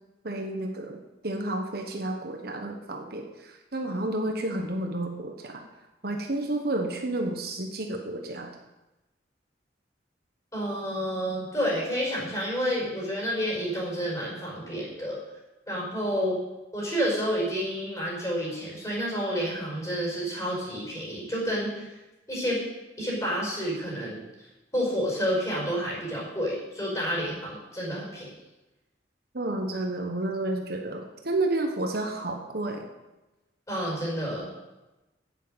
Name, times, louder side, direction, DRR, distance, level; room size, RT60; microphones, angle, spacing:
voice 1, 0.2-1.0 1.2-5.6 6.0-8.6 29.3-32.9, right 2 dB, 55° right, 3 dB, 1.1 m, -31 dB
voice 2, 10.5-15.2 15.7-16.4 16.7-21.9 22.3-22.6 23.0-24.2 24.7-28.3 33.7-34.5, equal, 20° left, -5 dB, 5.2 m, -29 dB
9.1 x 8.4 x 7.8 m, 1.0 s
head